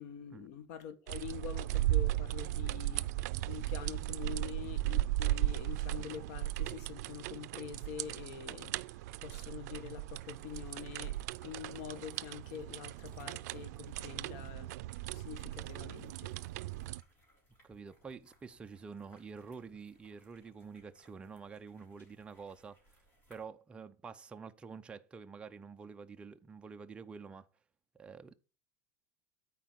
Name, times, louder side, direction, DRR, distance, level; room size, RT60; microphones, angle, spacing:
voice 1, 0.0-11.2 11.4-14.7 15.1-16.3, left 8 dB, 55° left, 1.6 m, -46 dB
sound 1, 1.1-17.0, right 16 dB, 75° right, 0.5 m, -37 dB
sound 2, 10.2-23.4, equal, 20° left, 3.6 m, -66 dB
voice 2, 17.6-22.8 23.3-27.5 27.9-28.4, right 5 dB, 10° right, 0.5 m, -48 dB
13.0 x 4.6 x 7.6 m
supercardioid pair, 175°, 9 cm